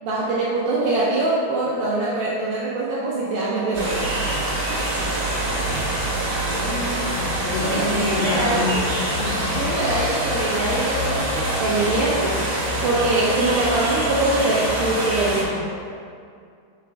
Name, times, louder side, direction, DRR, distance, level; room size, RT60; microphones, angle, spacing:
voice 1, 0.0-4.0 7.6-8.8 9.5-12.4 12.8-15.7, right 2 dB, 80° right, -7 dB, 2.1 m, -23 dB
sound 1, 3.7-15.4, right 1 dB, 55° right, 1.7 m, -25 dB
sound 2, 5.6-12.4, left 6 dB, 85° left, 1.8 m, -40 dB
voice 2, 6.4-8.8 9.2-9.4, left 2 dB, 70° left, -8 dB, 3.3 m, -27 dB
8.7 x 6.7 x 2.3 m, 2.3 s
omnidirectional pair, 5.0 m